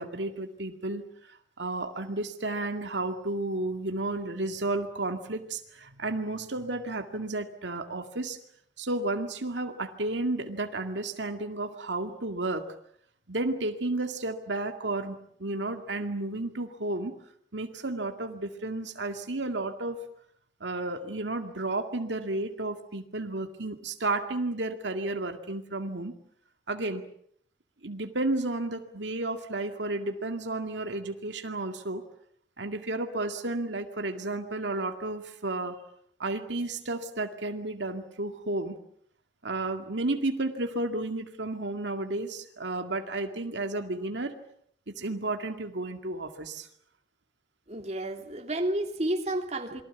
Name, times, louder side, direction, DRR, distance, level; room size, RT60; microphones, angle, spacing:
voice 1, 0.0-8.4 8.8-12.7 13.3-17.1 17.5-20.1 20.6-26.1 26.7-27.0 27.8-32.1 32.6-35.8 36.2-38.8 39.4-44.4 44.9-46.7, right 2 dB, 75° right, 2.1 m, -32 dB
voice 2, 47.7-49.8, right 1 dB, 35° right, 2.9 m, -31 dB
28.5 x 23.0 x 7.2 m
head